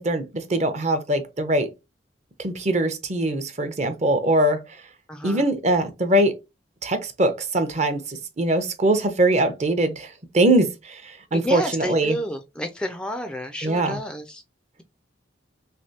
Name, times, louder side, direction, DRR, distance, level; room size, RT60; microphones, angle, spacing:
voice 1, 0.0-1.7 2.4-4.6 5.2-6.3 6.8-12.2 13.6-14.0, right 1 dB, 35° right, 0.6 m, -22 dB
voice 2, 5.1-5.4 11.3-14.4, equal, 5° left, 0.3 m, -31 dB
3.3 x 3.1 x 2.7 m
head